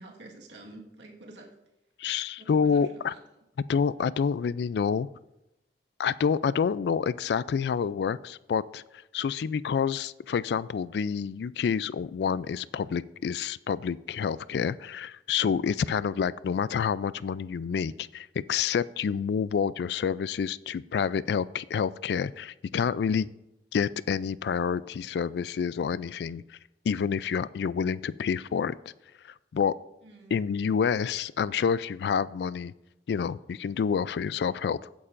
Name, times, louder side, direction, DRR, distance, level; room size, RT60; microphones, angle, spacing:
voice 1, 0.0-1.5 2.4-3.2 9.4-9.5 30.0-30.3, right 2 dB, 85° right, 0 dB, 1.6 m, -48 dB
voice 2, 2.0-3.1 3.7-5.1 6.0-8.8 9.1-23.3 23.7-26.6 26.8-28.7 29.5-29.7 30.3-32.7 33.1-34.8, left 6 dB, 65° left, 18 dB, 0.3 m, -28 dB
15.5 x 8.7 x 2.5 m, 0.91 s
head